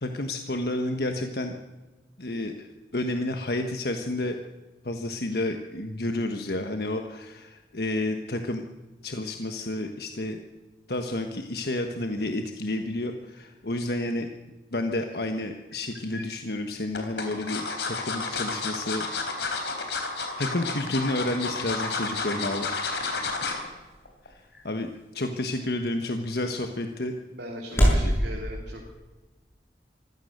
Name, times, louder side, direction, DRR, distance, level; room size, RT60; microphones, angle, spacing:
voice 1, 0.0-1.6 2.2-4.4 4.8-8.6 9.0-10.4 10.9-14.3 14.7-19.1 19.4-19.6 20.4-22.7 24.6-27.1 27.7-28.1, left 1 dB, 65° left, 5 dB, 1.3 m, -30 dB
sound 1, 15.7-16.2 16.9-23.7 24.1-24.3 24.6-24.7, left 4 dB, 90° left, 3.9 m, -31 dB
sound 2, 21.9-28.1, equal, 15° left, 7.5 m, -30 dB
voice 2, 27.3-28.9, equal, 80° right, -1 dB, 3.3 m, -40 dB
25.0 x 16.5 x 6.7 m, 1.2 s
head